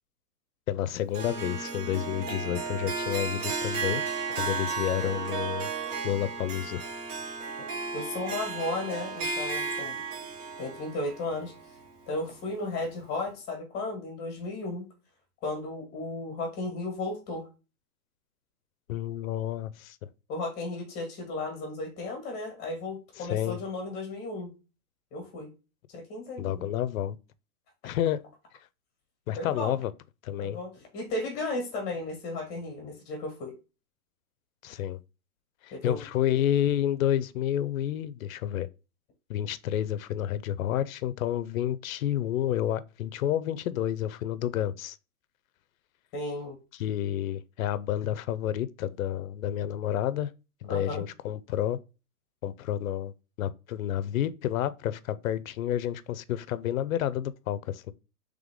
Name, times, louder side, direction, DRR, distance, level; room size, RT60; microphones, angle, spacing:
voice 1, 0.7-4.0 4.4-5.7 6.0-6.8 18.9-20.0 23.2-23.6 26.4-27.2 27.8-28.2 29.3-29.9 30.2-30.6 34.6-35.0 35.6-38.7 39.3-45.0 46.8-50.3 50.6-51.8 52.4-53.1 53.4-57.9, left 11 dB, 60° left, 0.5 m, -30 dB
Harp, 1.1-12.4, right 4 dB, 75° right, 1.8 m, -34 dB
voice 2, 7.9-10.0 10.6-11.5 12.1-14.9 15.4-17.5 20.3-24.5 25.1-25.5 25.9-26.7 29.4-29.8 30.4-33.5 35.7-36.1 46.1-46.6 50.7-51.1, left 2 dB, 20° left, 1.4 m, -34 dB
3.6 x 3.3 x 3.6 m
hypercardioid pair, 160°, 47 cm